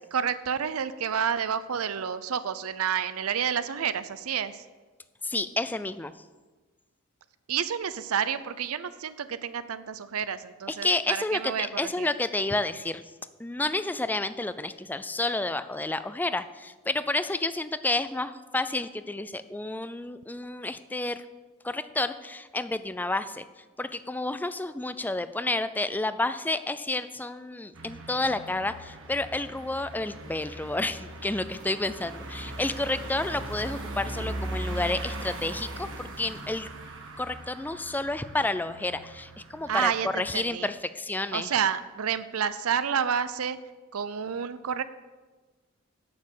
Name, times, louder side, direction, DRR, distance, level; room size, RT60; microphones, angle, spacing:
voice 1, 0.1-4.6 7.5-12.1 39.7-40.7 41.3-43.6 43.9-44.8, right 7 dB, 80° right, 14 dB, 0.5 m, -29 dB
voice 2, 5.2-6.1 10.7-13.0 13.4-21.2 21.6-23.4 23.8-36.7 37.2-41.5, left 2 dB, 10° left, 12 dB, 0.4 m, -30 dB
sound 1, 27.7-40.2, right 1 dB, 65° right, 1.6 m, -39 dB
8.5 x 6.6 x 8.2 m, 1.3 s
head